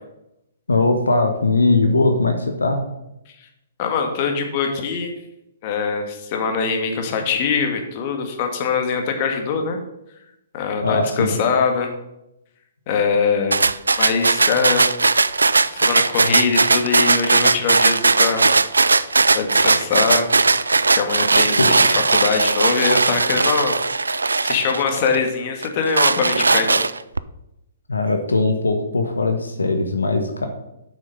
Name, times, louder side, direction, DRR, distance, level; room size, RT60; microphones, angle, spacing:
voice 1, 0.7-2.8 10.8-11.4 21.5-21.7 27.9-30.5, left 3 dB, 85° left, 6 dB, 1.1 m, -20 dB
voice 2, 3.8-5.1 5.6-9.8 10.5-11.9 12.9-13.6 14.0-14.9 15.7-18.5 19.3-20.3 20.9-26.8, left 5 dB, 40° left, 4 dB, 1.8 m, -22 dB
sound 1, 13.5-25.2 25.6-27.2, right 3 dB, 85° right, 0.4 m, -18 dB
8.5 x 6.3 x 5.4 m, 0.88 s
figure-of-eight pair, 125°, 0 cm